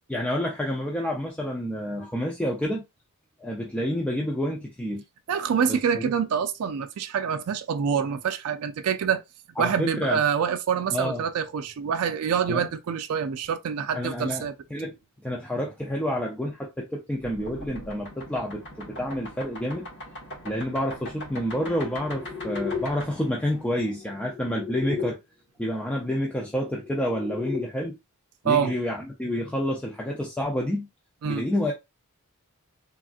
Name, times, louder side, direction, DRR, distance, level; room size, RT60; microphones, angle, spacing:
voice 1, 0.1-2.8 3.4-5.0 5.7-6.0 9.6-10.2 10.9-11.2 12.5-12.6 14.0-14.4 14.7-14.9 15.2-19.9 20.4-25.2 25.6-28.0 28.4-30.9 31.2-31.7, equal, 5° left, 0.4 m, -29 dB
voice 2, 5.3-9.2 9.6-14.5 28.4-28.7 31.2-31.5, right 7 dB, 70° right, 0.4 m, -26 dB
sound 1, 17.2-25.1 26.4-27.7, left 4 dB, 55° left, 1.3 m, -37 dB
3.5 x 2.4 x 2.4 m
head